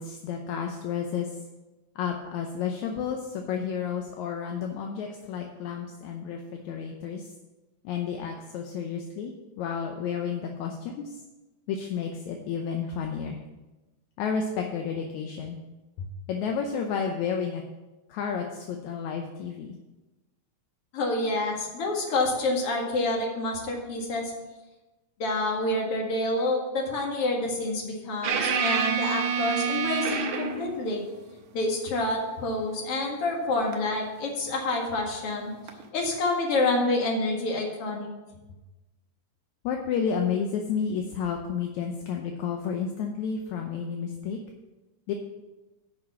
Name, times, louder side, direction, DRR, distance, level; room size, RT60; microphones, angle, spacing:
voice 1, 0.0-1.4 2.0-7.3 7.8-11.2 11.7-13.4 14.2-15.6 16.0-17.6 18.1-19.8 39.6-44.4 45.1-45.2, left 6 dB, 75° left, 3 dB, 1.9 m, -31 dB
voice 2, 20.9-24.3 25.2-31.0 31.5-35.5 35.9-38.1, left 2 dB, 50° left, -1 dB, 2.6 m, -28 dB
sound 1, 28.2-30.7 33.7-33.9 35.7-35.8, right 6 dB, 75° right, 2.6 m, -27 dB
10.5 x 5.7 x 7.0 m, 1.1 s
omnidirectional pair, 3.8 m